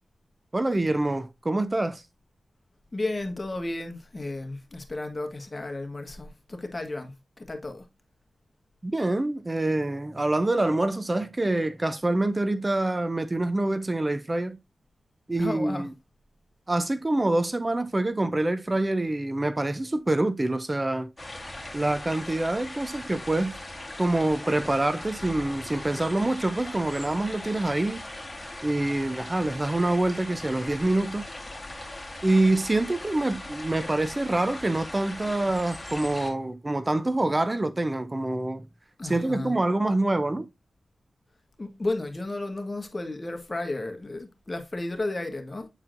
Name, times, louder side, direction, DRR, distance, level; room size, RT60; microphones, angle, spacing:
voice 1, 0.5-2.0 8.8-14.6 15.3-15.9 16.7-21.1 21.7-23.5 24.0-28.0 28.6-31.3 32.2-38.6 39.0-40.5, right 2 dB, 30° right, 0.5 m, -26 dB
voice 2, 2.9-7.9 15.4-15.9 39.0-39.6 41.6-45.7, left 2 dB, 35° left, 1.5 m, -33 dB
sound 1, 21.2-36.3, left 1 dB, 15° left, 2.2 m, -39 dB
8.9 x 4.3 x 2.6 m
cardioid pair, 45°, 0 cm